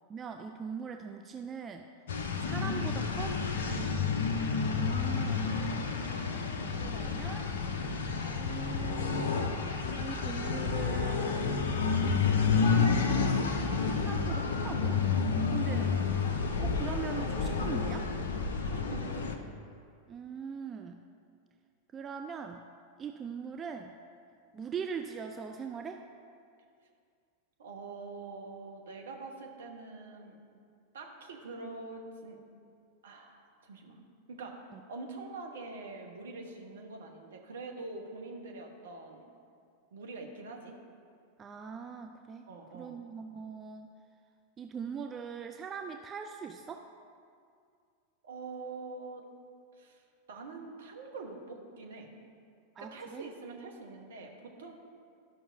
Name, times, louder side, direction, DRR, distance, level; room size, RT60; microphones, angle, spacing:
voice 1, 0.1-1.9 2.4-3.4 4.7-5.6 6.8-7.5 8.4-9.6 10.0-11.8 12.6-13.3 13.6-15.0 15.5-15.9 16.6-18.1 20.1-21.0 21.9-22.6 23.0-23.9 24.5-26.0 34.7-34.8 41.4-42.5 42.7-43.9 44.6-46.9 52.8-53.3, right 6 dB, 25° right, 5 dB, 0.4 m, -41 dB
sound 1, 2.1-19.4, left 5 dB, 65° left, 0.6 m, -30 dB
voice 2, 18.6-19.3 27.6-30.4 30.9-32.4 33.0-34.0 34.3-34.5 34.9-39.3 39.9-40.8 42.5-43.0 48.2-49.2 49.7-52.1 52.8-54.7, right 3 dB, 60° right, 1 dB, 1.1 m, -44 dB
13.0 x 5.7 x 2.7 m, 2.3 s
figure-of-eight pair, 90°, 0 cm